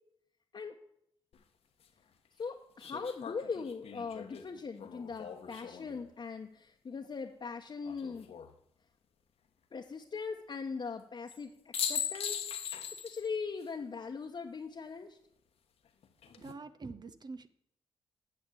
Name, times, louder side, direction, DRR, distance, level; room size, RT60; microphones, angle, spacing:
sound 1, 1.3-1.4 2.8-6.0 7.8-8.5 11.3-11.4 11.7-13.3 13.6-13.7 16.0-16.5, left 8 dB, 75° left, 1.2 m, -40 dB
voice 1, 2.4-8.3 9.7-12.4 12.9-15.2, left 5 dB, 50° left, 1 dB, 1.0 m, -40 dB
voice 2, 16.4-17.5, right 3 dB, 45° right, 11 dB, 0.7 m, -45 dB
9.1 x 6.6 x 8.4 m, 0.75 s
cardioid pair, 65°, 10 cm